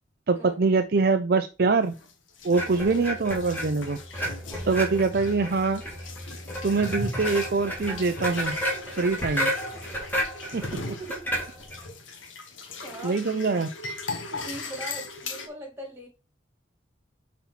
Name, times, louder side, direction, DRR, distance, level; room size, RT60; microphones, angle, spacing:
voice 1, 0.3-1.9 2.4-4.0 4.6-5.8 6.6-8.6 9.0-9.5 10.5-10.6 13.0-13.7, right 4 dB, 50° right, 8 dB, 0.5 m, -24 dB
sound 1, 1.8-15.5, left 3 dB, 75° left, 1.4 m, -40 dB
sound 2, 2.5-11.9, equal, 10° left, 2.6 m, -32 dB
voice 2, 10.7-11.2 12.8-13.4 14.1-16.1, right 1 dB, 10° right, 2 dB, 2.5 m, -42 dB
5.6 x 4.3 x 5.8 m, 0.30 s
head